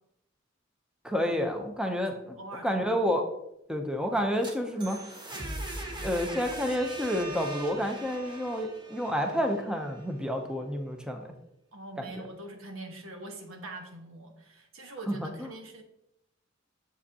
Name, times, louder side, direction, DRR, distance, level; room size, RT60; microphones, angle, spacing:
voice 1, 1.0-2.4 2.6-3.2 3.7-5.0 6.0-11.3 12.0-12.1 15.1-15.5, equal, 5° right, 4 dB, 0.6 m, -29 dB
voice 2, 2.1-2.9 11.7-15.8, right 2 dB, 85° right, 3 dB, 1.2 m, -43 dB
sound 1, 4.2-10.0, right 1 dB, 25° right, 1.0 m, -40 dB
7.6 x 7.0 x 2.8 m, 0.82 s
head